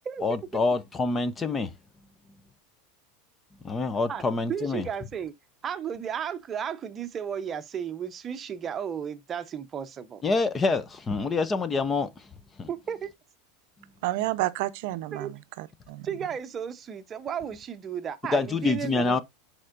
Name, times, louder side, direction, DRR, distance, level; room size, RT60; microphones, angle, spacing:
voice 1, 0.2-1.7 3.6-4.9 10.2-12.1 12.6-12.7 18.3-19.2, left 3 dB, 15° left, 0.5 m, -26 dB
voice 2, 4.5-5.3 5.6-10.2 12.7-13.1 15.1-15.3 16.0-19.2, right 8 dB, 20° right, 0.7 m, -34 dB
voice 3, 14.0-16.1, right 17 dB, 55° right, 0.6 m, -30 dB
11.0 x 4.4 x 2.5 m
supercardioid pair, 165°, 0 cm